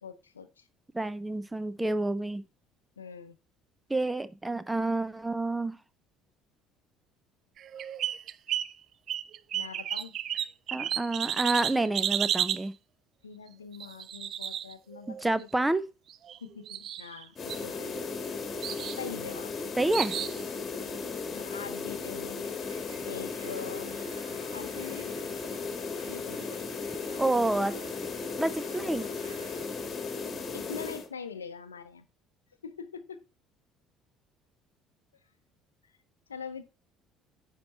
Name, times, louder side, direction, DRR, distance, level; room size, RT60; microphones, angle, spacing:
voice 1, 0.0-0.7 3.0-3.4 9.5-10.1 11.6-11.9 13.2-15.5 16.4-18.0 19.0-19.5 20.7-20.9 21.3-22.5 23.0-24.0 24.5-25.2 26.1-26.6 30.5-32.1 32.6-33.2 36.3-36.7, left 6 dB, 85° left, 0.6 m, -43 dB
voice 2, 0.9-2.4 3.9-5.8 10.7-12.7 15.2-15.8 19.8-20.2 27.2-27.7 28.4-29.1, right 2 dB, 10° right, 0.6 m, -28 dB
sound 1, 7.6-8.7 9.1-12.6 13.7-15.2 16.1-16.4 16.7-17.2 17.5-18.2 18.6-19.0 19.9-20.4, right 10 dB, 50° right, 0.3 m, -32 dB
sound 2, 17.3-31.1, left 4 dB, 35° left, 1.6 m, -36 dB
sound 3, 22.4-29.7, right 5 dB, 80° right, 1.1 m, -54 dB
9.6 x 4.5 x 4.1 m
figure-of-eight pair, 55°, 0 cm